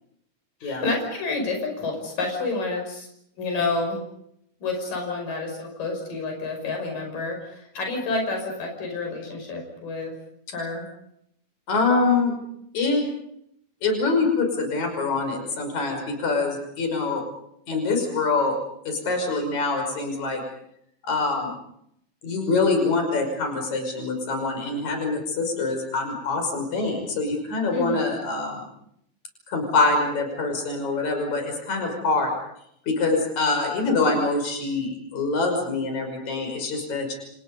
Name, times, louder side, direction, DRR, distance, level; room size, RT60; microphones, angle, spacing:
voice 1, 0.6-3.1 3.4-4.0 4.6-10.1 10.5-10.9 27.7-28.0, left 3 dB, 90° left, 3 dB, 7.1 m, -29 dB
voice 2, 11.7-12.3 12.7-13.0 13.8-17.2 17.7-18.6 18.9-20.4 21.0-21.5 22.2-28.6 29.5-32.3 32.9-37.1, left 3 dB, 60° left, 3 dB, 7.0 m, -24 dB
30.0 x 28.5 x 5.4 m, 0.74 s
omnidirectional pair, 3.8 m